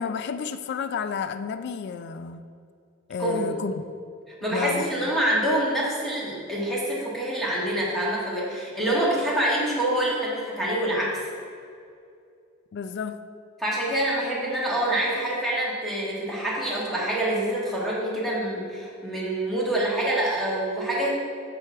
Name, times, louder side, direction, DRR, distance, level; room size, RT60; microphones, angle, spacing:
voice 1, 0.0-2.4 3.1-3.8 4.5-4.9 12.7-13.2, left 6 dB, 55° left, 11 dB, 0.3 m, -31 dB
voice 2, 3.2-3.6 4.4-11.2 13.6-21.1, right 1 dB, ahead, -7 dB, 1.7 m, -26 dB
8.6 x 6.1 x 3.5 m, 2.4 s
head